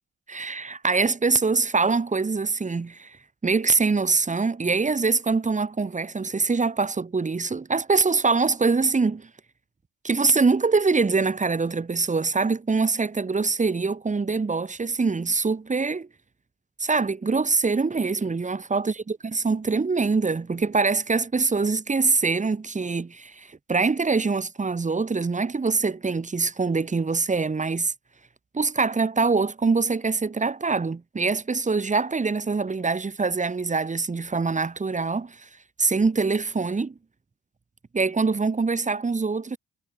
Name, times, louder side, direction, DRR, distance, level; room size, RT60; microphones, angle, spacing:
voice 1, 0.3-3.2 3.4-9.3 10.0-16.1 16.8-27.9 28.5-35.5 35.8-36.9 37.9-39.6, right 4 dB, 25° right, 1.9 m, -24 dB
cardioid pair, 90°, 30 cm